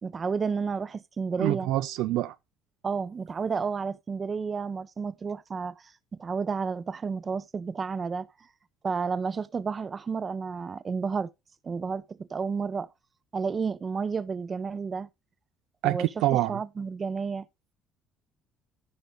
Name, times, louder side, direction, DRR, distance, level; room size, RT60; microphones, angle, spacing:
voice 1, 0.0-1.7 2.8-8.3 8.8-11.3 11.6-12.9 13.3-15.1 15.8-16.1 16.5-17.4, right 5 dB, 30° right, 0.9 m, -31 dB
voice 2, 1.4-2.3 15.8-16.6, right 15 dB, 80° right, 0.5 m, -26 dB
14.5 x 5.2 x 3.9 m
cardioid pair, 105°, 0 cm